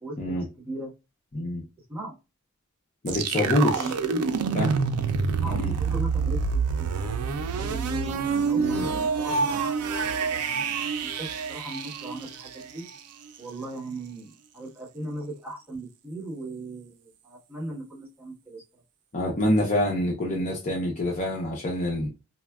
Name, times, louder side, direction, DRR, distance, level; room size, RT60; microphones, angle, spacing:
voice 1, 0.0-0.9 1.9-2.1 3.3-4.8 5.4-7.2 7.6-8.1 8.4-10.8 11.0-12.8 13.4-18.6, right 2 dB, 10° right, 1.3 m, -38 dB
voice 2, 1.3-1.6 3.0-3.9 4.5-4.8 5.4-5.7 8.5-8.9 19.1-22.1, left 1 dB, 30° left, 0.5 m, -26 dB
sound 1, 3.1-12.9, right 5 dB, 90° right, 0.4 m, -27 dB
4.1 x 2.1 x 2.3 m
head